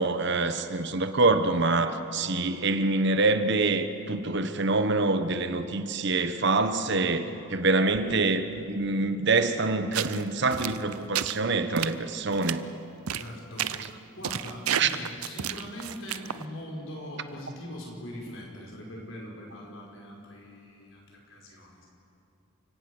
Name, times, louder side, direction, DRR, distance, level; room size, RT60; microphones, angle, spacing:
voice 1, 0.0-7.2 7.5-12.6 14.8-14.9, right 3 dB, 55° right, 10 dB, 1.1 m, -25 dB
voice 2, 6.6-6.9 8.5-8.7 13.1-13.7 14.1-21.9, equal, 65° left, -1 dB, 5.4 m, -41 dB
sound 1, 9.9-10.2 10.5-11.4 11.8-11.9 12.3-12.5 13.1-13.3 13.6-13.9 14.2-16.4, right 9 dB, 85° right, 0.7 m, -31 dB
29.5 x 17.5 x 6.4 m, 2.8 s
head